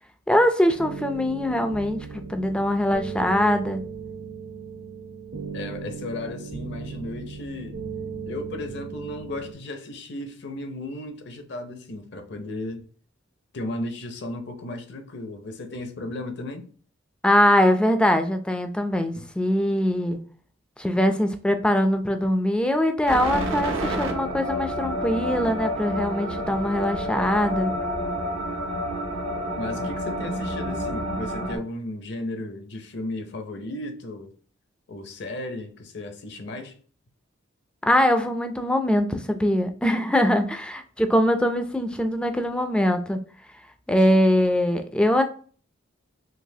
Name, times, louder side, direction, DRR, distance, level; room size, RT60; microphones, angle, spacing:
voice 1, 0.3-2.0 2.3-3.8 17.2-20.2 20.8-27.7 37.8-43.2 43.9-45.2, equal, 5° left, 0.3 m, -22 dB
sound 1, 0.8-9.5, right 5 dB, 60° right, 0.7 m, -37 dB
voice 2, 5.5-7.8 8.3-12.9 13.5-16.7 19.2-19.3 29.5-34.3 34.9-36.8, left 2 dB, 60° left, 0.6 m, -35 dB
sound 2, 23.1-31.6, equal, 85° right, 1.0 m, -29 dB
3.9 x 2.7 x 2.7 m
head